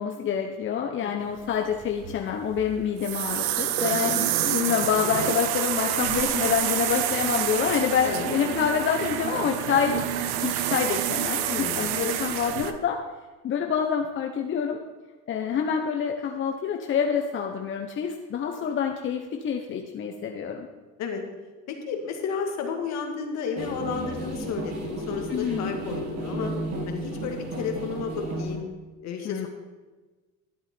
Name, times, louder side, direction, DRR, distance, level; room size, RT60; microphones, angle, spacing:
voice 1, 0.0-10.0 10.4-13.0 13.4-14.8 15.3-20.7 25.3-25.8 29.2-29.5, left 7 dB, 40° left, 3 dB, 0.9 m, -27 dB
voice 2, 1.0-1.5 8.1-8.2 11.5-12.0 21.0-21.2 21.7-26.5 26.9-28.7 29.0-29.5, left 6 dB, 65° left, 4 dB, 1.8 m, -32 dB
sound 1, 1.5-12.7, right 11 dB, 85° right, 0.8 m, -28 dB
sound 2, 23.6-28.5, right 1 dB, 55° right, 2.6 m, -33 dB
12.0 x 7.9 x 4.4 m, 1.3 s
supercardioid pair, 100°, 29 cm